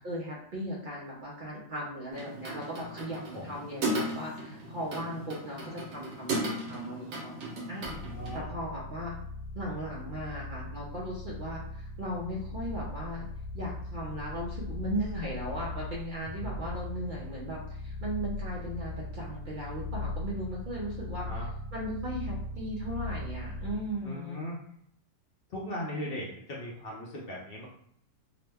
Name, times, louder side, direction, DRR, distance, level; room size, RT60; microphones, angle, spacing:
voice 1, 0.0-7.3 7.7-8.0 8.3-9.1 9.5-13.2 13.5-21.3 21.7-24.4, equal, 55° right, -5 dB, 0.6 m, -37 dB
sound 1, 2.1-8.4, right 1 dB, 80° right, 1.3 m, -36 dB
sound 2, 7.8-24.0, left 2 dB, 85° left, 1.0 m, -39 dB
voice 2, 8.0-8.5 16.4-16.7 21.2-21.5 24.0-24.6 25.5-27.7, equal, 60° left, -3 dB, 0.7 m, -39 dB
2.9 x 2.0 x 3.3 m, 0.68 s
omnidirectional pair, 1.4 m